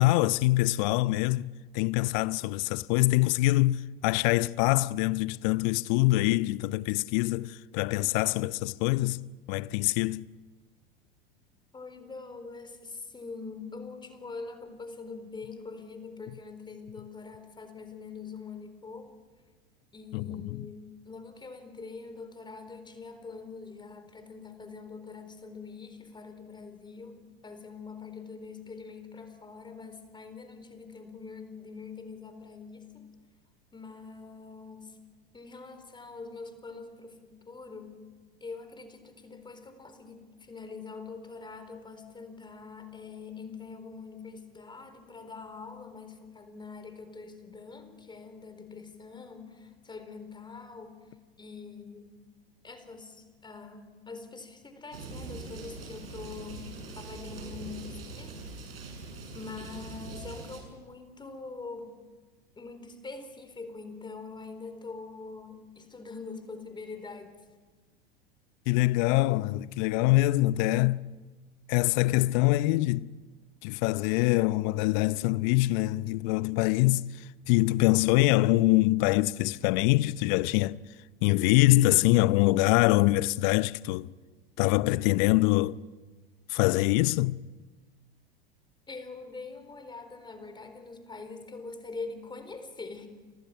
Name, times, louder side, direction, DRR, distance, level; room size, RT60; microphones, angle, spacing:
voice 1, 0.0-10.3 20.1-20.6 68.7-71.0 71.7-73.1 73.6-80.8 81.2-84.1 84.6-85.8 86.5-87.4, left 19 dB, 50° left, 0.8 m, -24 dB
voice 2, 11.7-19.2 19.9-33.1 33.7-35.0 35.3-38.0 38.4-52.2 52.6-56.7 57.0-58.4 59.3-62.0 62.6-67.4 88.9-93.1, left 4 dB, 15° left, 4.2 m, -44 dB
sound 1, 54.9-60.6, right 3 dB, 75° right, 7.1 m, -42 dB
30.0 x 25.5 x 6.0 m
figure-of-eight pair, 85°, 30 cm